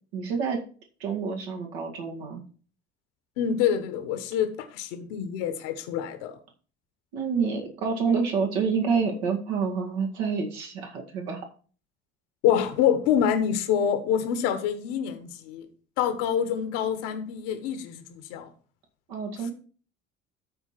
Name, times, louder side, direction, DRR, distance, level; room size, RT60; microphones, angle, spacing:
voice 1, 0.1-0.6 1.0-2.4 7.1-11.4 19.1-19.5, right 5 dB, 65° right, 1 dB, 2.1 m, -28 dB
voice 2, 3.4-6.4 12.4-15.7 16.0-18.5, left 9 dB, 60° left, 9 dB, 1.3 m, -26 dB
13.0 x 4.5 x 4.4 m, 0.40 s
figure-of-eight pair, 55°, 34 cm